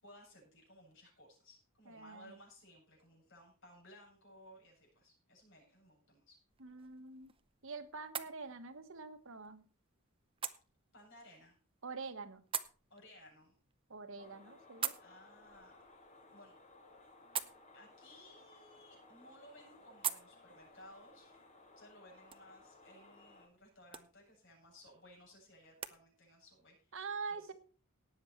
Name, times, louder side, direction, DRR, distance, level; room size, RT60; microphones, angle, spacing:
voice 1, 0.0-6.4 10.9-11.6 12.9-13.5 14.8-15.9 16.3-16.6 17.7-21.4 21.8-27.0 27.3-27.5, left 1 dB, 60° left, -2 dB, 7.8 m, -59 dB
voice 2, 1.9-2.4 6.6-7.3 7.6-9.7 11.8-12.4 13.9-15.0 26.9-27.5, right 4 dB, 65° right, 10 dB, 1.4 m, -45 dB
sound 1, 6.5-26.0, right 9 dB, 25° right, 0.7 m, -48 dB
sound 2, 14.2-23.5, left 2 dB, 35° left, 2.4 m, -60 dB
18.5 x 7.3 x 4.6 m, 0.38 s
head